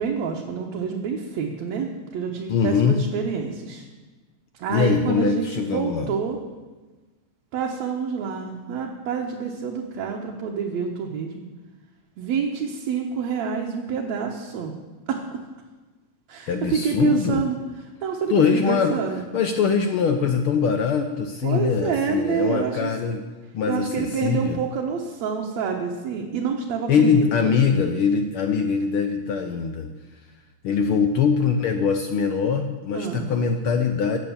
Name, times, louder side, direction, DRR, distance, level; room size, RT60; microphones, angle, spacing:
voice 1, 0.0-3.8 4.6-6.4 7.5-11.5 12.2-14.7 15.1-15.2 16.3-17.6 18.0-19.2 21.4-22.9 23.7-27.5 32.9-33.4, right 6 dB, 70° right, 0 dB, 2.4 m, -27 dB
voice 2, 2.5-3.0 4.7-6.1 16.5-17.4 18.3-19.0 19.3-23.2 23.5-24.6 26.9-29.9 30.6-34.2, left 6 dB, 75° left, 6 dB, 1.2 m, -22 dB
16.5 x 8.4 x 7.2 m, 1.3 s
omnidirectional pair, 3.4 m